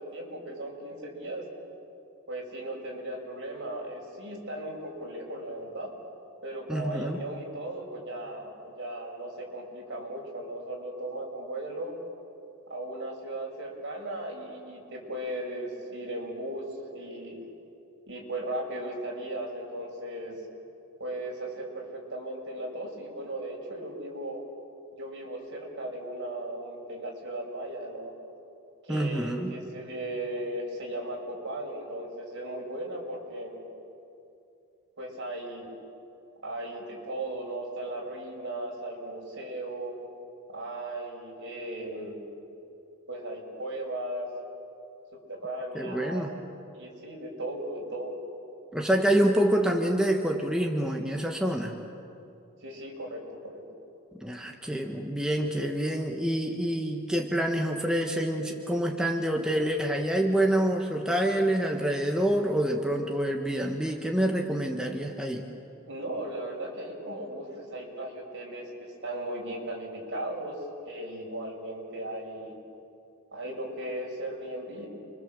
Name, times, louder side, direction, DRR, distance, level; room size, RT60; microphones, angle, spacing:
voice 1, 0.0-1.4 2.3-5.9 6.4-11.9 12.7-17.4 18.1-20.4 21.0-24.5 25.0-28.1 28.8-33.6 35.0-35.7 36.4-39.9 40.5-42.2 43.1-44.3 45.1-46.4 46.7-48.2 52.6-53.6 65.8-72.5 73.3-74.9, right 1 dB, 55° right, -1 dB, 5.8 m, -37 dB
voice 2, 6.7-7.2 28.9-29.5 45.7-46.3 48.7-51.7 54.2-65.4, right 1 dB, 5° right, 1 dB, 1.3 m, -27 dB
29.5 x 23.5 x 7.7 m, 2.7 s
head